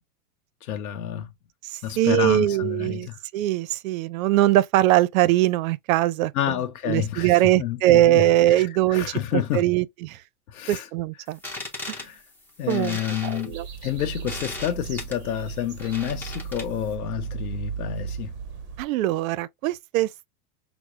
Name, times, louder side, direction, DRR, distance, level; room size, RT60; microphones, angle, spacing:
voice 1, 0.6-1.3 1.8-3.2 6.3-9.6 10.5-10.9 11.9-12.2 12.6-18.4, left 11 dB, 70° left, 0.7 m, -29 dB
voice 2, 1.7-6.6 6.8-9.1 9.3-10.2 10.7-11.4 12.7-13.7 18.8-20.3, right 14 dB, 65° right, 0.5 m, -22 dB
sound 1, 11.3-16.9, left 2 dB, 5° left, 0.5 m, -38 dB
sound 2, 13.5-18.8, right 7 dB, 25° right, 0.8 m, -36 dB
5.7 x 2.0 x 2.5 m
hypercardioid pair, 130°, 45 cm